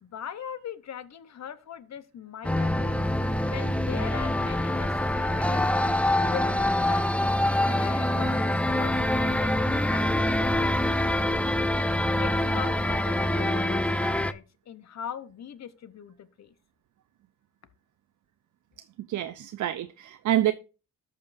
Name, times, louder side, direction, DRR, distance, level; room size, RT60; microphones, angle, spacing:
voice 1, 0.0-3.1 3.5-6.0 6.3-7.1 7.5-11.0 12.2-16.5, left 9 dB, 60° left, 0.9 m, -41 dB
sound 1, 2.4-14.3, left 1 dB, 5° left, 0.5 m, -25 dB
voice 2, 19.1-20.5, right 12 dB, 70° right, 0.5 m, -27 dB
13.5 x 5.3 x 2.5 m
cardioid pair, 75°, 31 cm